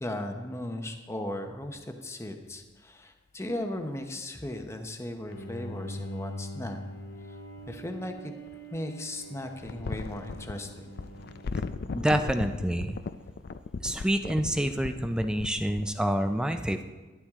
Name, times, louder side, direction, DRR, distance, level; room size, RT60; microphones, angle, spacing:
voice 1, 0.0-6.8 7.3-7.4 7.7-8.3 8.7-10.9, left 1 dB, 15° left, 5 dB, 0.9 m, -37 dB
Bowed string instrument, 5.3-12.5, equal, 80° left, 2.0 m, -43 dB
sound 1, 5.3-5.4 7.6-8.8 9.6-15.9, left 4 dB, 55° left, 0.4 m, -37 dB
voice 2, 11.9-13.0 13.8-16.8, equal, 5° right, 7 dB, 0.4 m, -27 dB
12.0 x 11.0 x 3.7 m, 1.2 s
head